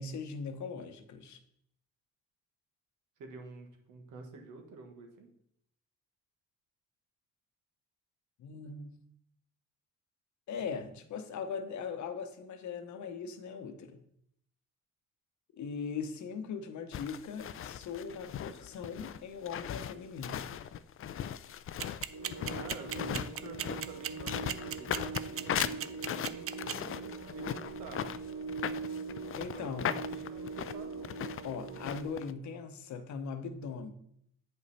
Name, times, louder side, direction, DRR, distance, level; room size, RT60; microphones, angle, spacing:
voice 1, 0.0-1.4 8.4-9.0 10.5-14.0 15.5-20.5 29.4-29.9 31.4-33.9, left 5 dB, 70° left, 9 dB, 1.0 m, -40 dB
voice 2, 3.2-5.3 22.5-28.1 29.3-31.1, right 3 dB, 90° right, 3 dB, 1.6 m, -49 dB
sound 1, 16.9-32.3, left 9 dB, 45° left, 0.4 m, -38 dB
sound 2, 21.8-26.7, right 10 dB, 50° right, 0.5 m, -35 dB
sound 3, 22.1-32.0, right 4 dB, 70° right, 1.0 m, -42 dB
8.0 x 5.4 x 4.2 m, 0.71 s
cardioid pair, 90°, 30 cm